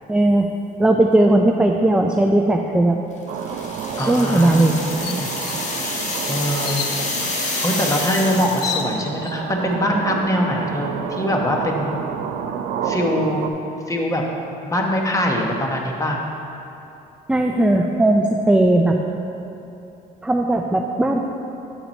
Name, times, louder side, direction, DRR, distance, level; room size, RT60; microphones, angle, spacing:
voice 1, 0.1-0.5 0.8-3.0 4.1-4.7 17.3-19.0 20.2-21.3, right 1 dB, 5° right, 2 dB, 0.4 m, -17 dB
sound 1, 3.3-8.9, left 2 dB, 45° left, 1.2 m, -28 dB
sound 2, 3.3-13.5, right 7 dB, 75° right, 0.5 m, -30 dB
sound 3, 4.0-4.2 4.6-4.7 5.0-5.6 6.6-7.0 8.1-8.2 8.5-9.3, left 7 dB, 70° left, 0.6 m, -30 dB
voice 2, 4.0-5.3 6.3-6.8 7.6-12.0 12.8-13.5 13.9-14.2 14.6-16.2, equal, 20° left, 0 dB, 1.0 m, -23 dB
8.5 x 5.7 x 4.3 m, 2.8 s
cardioid pair, 110°, 17 cm